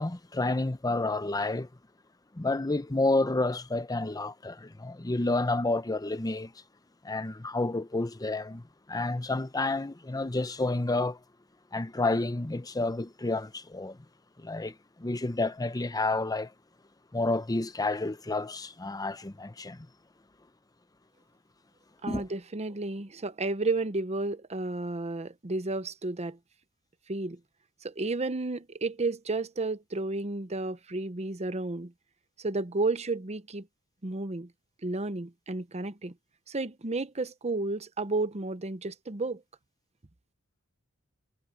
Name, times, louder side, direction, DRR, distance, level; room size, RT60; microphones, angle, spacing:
voice 1, 0.0-1.7 2.3-6.5 7.0-11.2 11.7-14.0 14.4-16.5 17.1-19.9 22.1-22.2, left 2 dB, 15° left, 0.7 m, -30 dB
voice 2, 22.0-26.4 27.1-27.4 27.8-31.9 32.4-33.7 34.0-34.5 34.8-36.1 36.5-39.4, right 3 dB, 30° right, 0.9 m, -32 dB
head